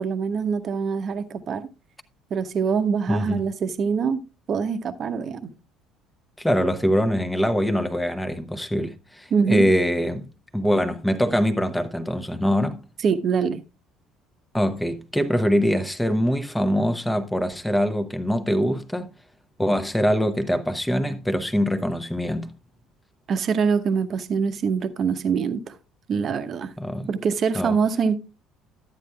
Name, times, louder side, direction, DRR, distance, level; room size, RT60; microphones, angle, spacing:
voice 1, 0.0-1.7 2.3-4.2 4.5-5.5 9.3-9.7 13.0-13.6 23.3-25.8 26.1-26.7 27.1-28.2, right 6 dB, 40° right, 0.9 m, -24 dB
voice 2, 3.1-3.4 6.4-12.8 14.5-19.1 19.6-22.5 26.8-27.1 27.5-27.8, equal, 5° left, 0.9 m, -23 dB
12.5 x 9.1 x 2.3 m
figure-of-eight pair, 55°, 0 cm